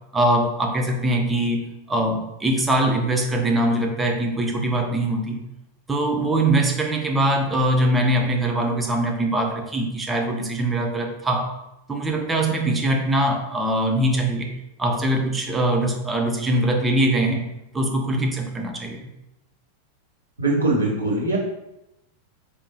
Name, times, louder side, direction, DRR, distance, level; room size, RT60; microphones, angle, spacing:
voice 1, 0.1-5.4 5.9-11.5 11.9-14.5 14.8-17.4 17.7-19.1, right 1 dB, 10° right, 2 dB, 0.8 m, -22 dB
voice 2, 20.4-21.4, right 2 dB, 80° right, -6 dB, 1.5 m, -21 dB
4.5 x 3.5 x 2.9 m, 0.87 s
figure-of-eight pair, 90°, 0 cm